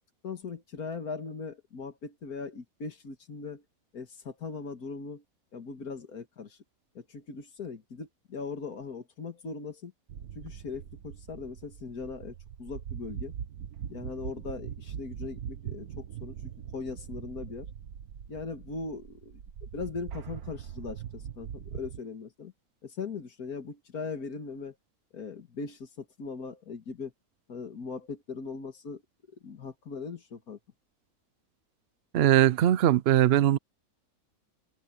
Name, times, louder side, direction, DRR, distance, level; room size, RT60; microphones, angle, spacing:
voice 1, 0.2-3.6 3.9-5.2 5.5-6.6 6.9-9.9 10.3-13.3 13.9-16.4 16.7-17.7 18.3-22.5 22.8-24.8 25.1-27.1 27.5-29.0 29.3-30.6, left 4 dB, 85° left, 2.4 m, -39 dB
sound 1, 10.1-22.0, right 9 dB, 85° right, 1.6 m, -41 dB
voice 2, 32.1-33.6, right 12 dB, 65° right, 0.6 m, -21 dB
omnidirectional pair, 1.5 m